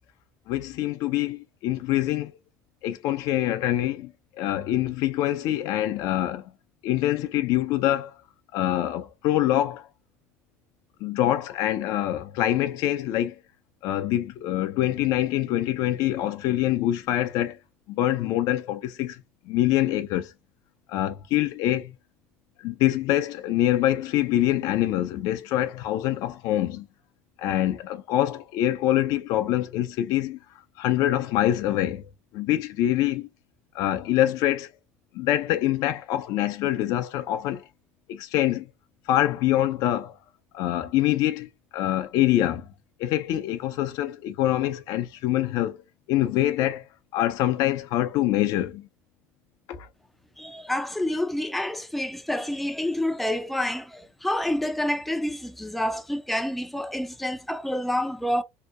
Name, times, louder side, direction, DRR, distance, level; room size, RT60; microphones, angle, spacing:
voice 1, 0.5-2.3 2.8-4.1 4.4-6.4 6.8-8.1 8.5-9.8 11.0-13.3 13.8-17.6 17.9-19.1 19.5-20.3 20.9-21.9 22.6-26.9 27.4-30.4 30.8-32.0 32.3-33.3 33.8-34.7 35.1-37.6 38.1-38.7 39.1-40.1 40.5-41.5 41.7-42.7 43.0-45.8 46.1-46.8 47.1-48.9 49.7-49.9, left 13 dB, 60° left, 0.4 m, -25 dB
voice 2, 50.4-58.4, left 1 dB, ahead, 0.4 m, -28 dB
2.7 x 2.0 x 2.5 m
hypercardioid pair, 75°, 7 cm